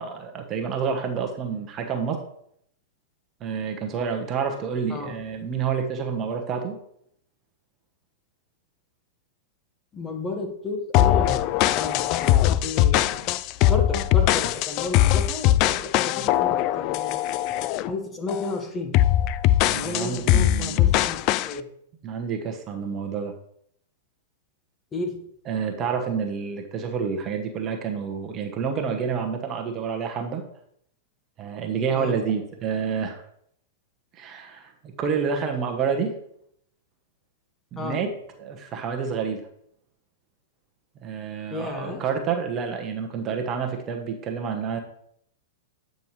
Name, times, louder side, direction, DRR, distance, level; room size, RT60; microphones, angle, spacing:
voice 1, 0.0-2.2 3.4-6.8 19.6-21.0 22.0-23.3 25.5-30.4 31.4-33.2 34.1-36.1 37.7-38.1 38.4-39.4 41.0-44.8, right 6 dB, 35° right, 4 dB, 1.1 m, -28 dB
voice 2, 4.9-5.2 9.9-11.4 11.7-13.3 13.7-17.2 17.8-19.0 19.7-21.7 24.9-25.2 31.9-32.2 37.8-38.0 41.5-42.0, left 3 dB, 20° left, 3 dB, 1.4 m, -32 dB
sound 1, 10.9-17.9 18.3-18.5 18.9-21.5, left 13 dB, 45° left, 0.3 m, -21 dB
8.8 x 5.3 x 3.2 m, 0.70 s
hypercardioid pair, 110°, 0 cm